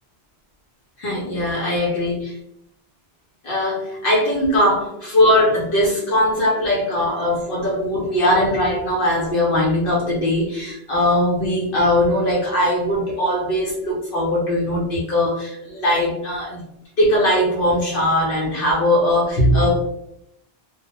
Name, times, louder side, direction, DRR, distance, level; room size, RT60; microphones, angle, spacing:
voice 1, 1.0-2.4 3.4-16.6 17.0-19.9, left 1 dB, 65° left, -4 dB, 0.8 m, -20 dB
2.2 x 2.0 x 2.8 m, 0.77 s
omnidirectional pair, 1.1 m